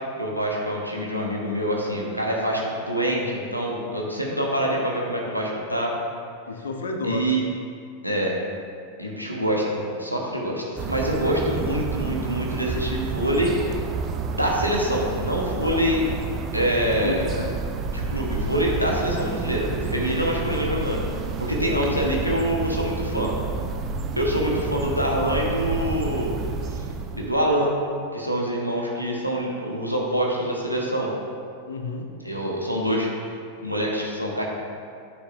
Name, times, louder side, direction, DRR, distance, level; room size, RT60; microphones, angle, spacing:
voice 1, 0.2-5.9 7.0-7.4 8.0-8.4 9.0-13.7 14.3-16.0 16.5-17.2 17.9-21.0 21.4-23.3 24.2-26.3 27.2-27.7 28.1-31.1 32.2-33.1 33.6-34.4, equal, 90° right, -2 dB, 1.1 m, -25 dB
voice 2, 6.5-7.4 16.8-17.5 21.6-21.8 31.7-32.1, left 3 dB, 65° left, 4 dB, 0.7 m, -31 dB
sound 1, 10.8-27.4, right 4 dB, 30° right, 0.4 m, -30 dB
9.7 x 6.0 x 2.6 m, 2.3 s
figure-of-eight pair, 90°, 0 cm